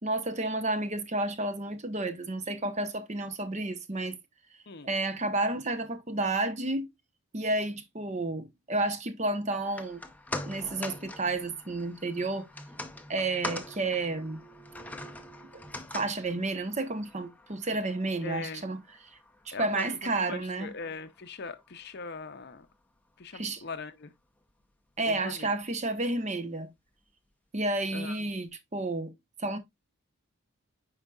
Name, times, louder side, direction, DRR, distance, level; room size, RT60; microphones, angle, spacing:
voice 1, 0.0-4.2 4.8-6.9 7.3-10.0 10.5-12.5 13.1-14.4 15.9-18.8 19.5-20.7 23.3-23.6 25.0-26.7 27.5-29.1 29.4-29.6, right 2 dB, 30° right, 0.9 m, -31 dB
sound 1, 9.6-22.0 22.3-22.4, left 1 dB, 5° left, 0.6 m, -43 dB
voice 2, 18.2-18.6 19.5-22.7 23.2-24.1 25.0-25.5 27.9-28.3, left 4 dB, 50° left, 0.7 m, -40 dB
9.0 x 4.8 x 2.3 m
head